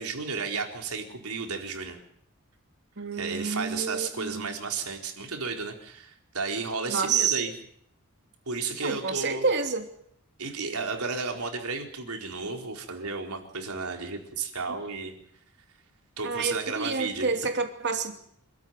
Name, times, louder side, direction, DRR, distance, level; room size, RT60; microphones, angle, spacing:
voice 1, 0.0-2.0 3.1-7.5 8.5-9.5 10.4-15.1 16.2-17.3, right 4 dB, 85° right, 3 dB, 4.3 m, -33 dB
voice 2, 3.0-4.5 6.9-7.4 8.8-9.9 16.2-18.1, right 5 dB, 50° right, 5 dB, 2.8 m, -28 dB
27.5 x 13.0 x 9.3 m, 0.69 s
head